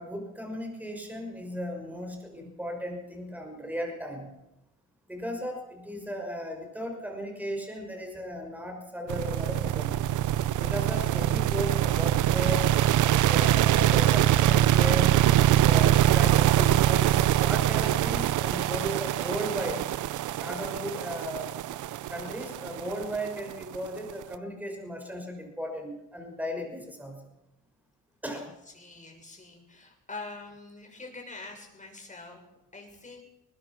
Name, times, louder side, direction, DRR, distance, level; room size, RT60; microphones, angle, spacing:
voice 1, 0.0-4.3 5.1-10.1 10.6-12.7 13.0-15.2 15.4-19.9 20.4-21.6 22.1-27.2 28.2-28.5, equal, 5° right, 2 dB, 6.1 m, -36 dB
sound 1, 9.1-24.2, right 13 dB, 80° right, 0.8 m, -23 dB
sound 2, 9.4-14.9, left 8 dB, 75° left, 5.9 m, -48 dB
voice 2, 28.7-32.4 32.7-33.2, left 3 dB, 25° left, 3 dB, 6.9 m, -44 dB
21.0 x 20.0 x 6.1 m, 0.94 s
cardioid pair, 90°, 30 cm